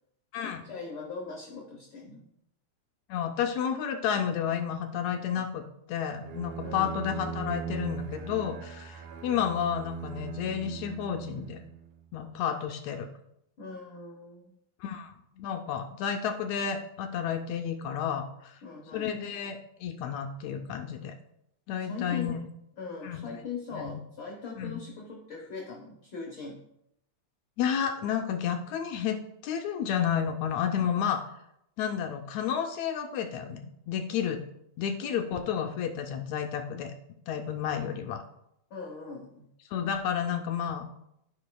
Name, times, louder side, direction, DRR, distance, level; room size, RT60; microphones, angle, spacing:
voice 1, 0.4-2.3 6.6-7.0 13.6-14.5 18.6-19.1 21.8-22.4 22.8-26.6 38.7-39.5, left 4 dB, 60° left, -1 dB, 1.3 m, -40 dB
voice 2, 3.1-11.6 12.1-13.1 14.8-18.6 18.9-21.1 21.7-22.4 23.0-23.2 23.7-24.0 24.6-24.8 27.6-29.2 29.4-31.2 31.8-34.4 34.8-36.9 37.3-38.2 39.7-40.9, left 8 dB, 80° left, 5 dB, 1.7 m, -31 dB
Bowed string instrument, 6.2-12.0, right 8 dB, 80° right, 2.0 m, -40 dB
13.5 x 5.0 x 2.2 m, 0.80 s
omnidirectional pair, 3.4 m